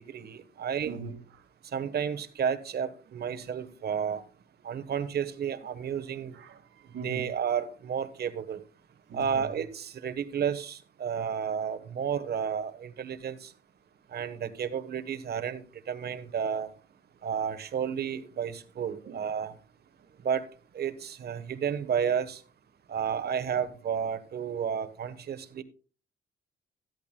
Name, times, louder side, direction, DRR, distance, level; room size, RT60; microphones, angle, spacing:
voice 1, 0.1-0.9 1.7-4.2 4.6-6.4 7.0-8.6 9.1-13.5 14.1-16.7 17.2-19.5 20.2-20.4 20.7-22.4 22.9-25.6, right 7 dB, 55° right, 1.1 m, -32 dB
voice 2, 0.6-1.4 6.3-7.3 9.1-9.6 19.0-19.2, right 4 dB, 70° right, 1.7 m, -42 dB
13.0 x 12.0 x 2.2 m
cardioid pair, 90°, 20 cm